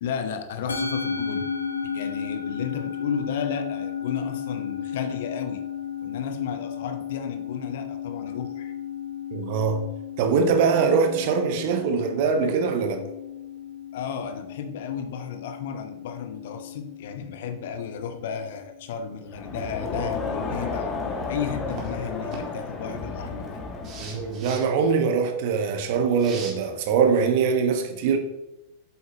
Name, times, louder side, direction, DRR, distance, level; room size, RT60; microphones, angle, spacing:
voice 1, 0.0-1.5 1.9-5.6 6.0-8.7 13.9-20.9 21.3-23.5, left 7 dB, 55° left, 0.9 m, -33 dB
Musical instrument, 0.7-19.2, left 7 dB, 75° left, 1.3 m, -34 dB
voice 2, 9.3-9.8 10.2-13.0 24.0-28.2, right 5 dB, 50° right, 1.2 m, -22 dB
Crowd, 19.3-24.5, left 4 dB, 25° left, 1.8 m, -32 dB
sound 1, 21.7-21.9 22.3-22.4 23.8-24.7 26.2-26.5, right 4 dB, 35° right, 2.1 m, -39 dB
8.5 x 7.8 x 2.8 m
figure-of-eight pair, 90°, 0 cm